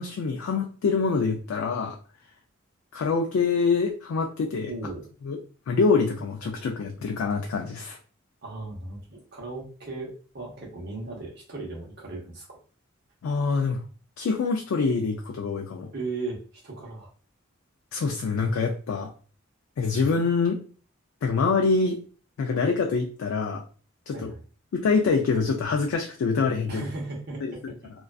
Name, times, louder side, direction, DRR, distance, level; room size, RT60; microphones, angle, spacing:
voice 1, 0.0-2.0 2.9-4.7 5.2-5.4 5.7-8.0 13.2-13.8 14.2-15.9 17.9-19.1 19.8-20.6 21.2-22.0 22.4-23.6 24.1-24.3 24.7-26.8 27.4-27.7, left 4 dB, 85° left, 3 dB, 0.3 m, -25 dB
voice 2, 4.7-5.1 8.4-12.5 15.9-17.1 24.1-24.4 26.7-27.9, right 3 dB, 55° right, -2 dB, 0.8 m, -37 dB
2.4 x 2.3 x 2.3 m, 0.40 s
head